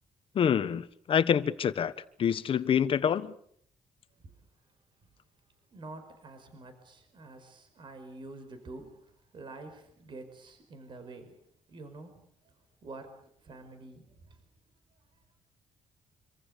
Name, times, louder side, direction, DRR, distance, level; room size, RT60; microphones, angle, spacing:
voice 1, 0.3-1.9 2.2-3.3, left 8 dB, 50° left, 1.3 m, -26 dB
voice 2, 4.1-4.5 5.0-5.1 5.7-14.4 14.9-15.0, right 2 dB, 40° right, 5.1 m, -48 dB
26.5 x 26.0 x 6.7 m
cardioid pair, 160°, 12 cm